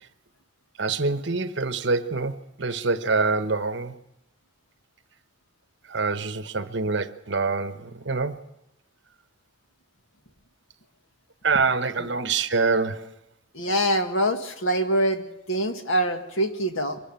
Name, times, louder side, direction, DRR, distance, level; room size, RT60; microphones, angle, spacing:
voice 1, 0.8-3.9 5.9-8.4 11.4-13.1, right 4 dB, 60° right, 1.0 m, -25 dB
voice 2, 13.5-17.0, right 1 dB, 80° left, 1.9 m, -25 dB
24.0 x 12.5 x 9.0 m
head